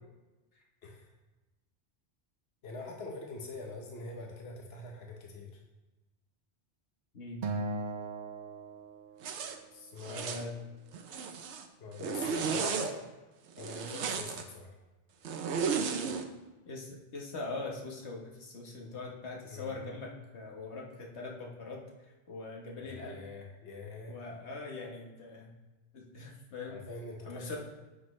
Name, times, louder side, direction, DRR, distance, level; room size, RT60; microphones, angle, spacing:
voice 1, 0.8-1.1 2.6-5.6 9.7-10.4 11.8-13.0 13.6-14.8 19.5-19.8 22.7-24.2 26.7-27.6, left 3 dB, 70° left, 0 dB, 1.3 m, -44 dB
voice 2, 7.1-7.5 10.1-10.5 16.7-21.9 22.3-23.2 24.1-25.5 25.9-26.8 27.2-27.6, left 3 dB, 85° left, -1 dB, 1.5 m, -42 dB
Acoustic guitar, 7.4-9.8, right 3 dB, 55° right, 0.9 m, -38 dB
Zipper (clothing), 9.2-9.6 10.0-10.5 10.9-11.6 12.0-12.9 13.6-14.4 15.2-16.2, right 6 dB, 85° right, 1.0 m, -34 dB
10.0 x 6.2 x 3.2 m, 1.1 s
omnidirectional pair, 1.1 m